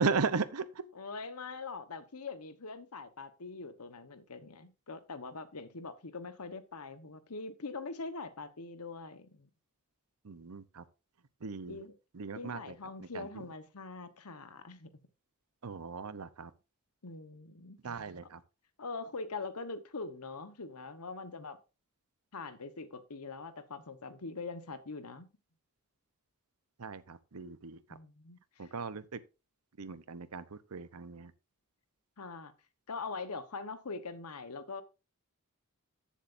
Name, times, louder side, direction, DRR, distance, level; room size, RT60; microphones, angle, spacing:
voice 1, 0.0-0.9 10.2-10.8 11.4-11.8 12.2-12.7 13.1-13.3 15.6-16.5 17.8-18.4 26.8-27.8 28.6-29.2 29.8-30.4 30.7-31.3, right 4 dB, 75° right, 0.8 m, -36 dB
voice 2, 0.9-9.5 11.7-11.9 12.4-14.9 17.0-17.8 18.8-21.6 22.3-25.3 27.9-28.7 32.2-32.5 32.9-34.8, left 4 dB, 80° left, 1.1 m, -43 dB
14.0 x 7.3 x 2.6 m
head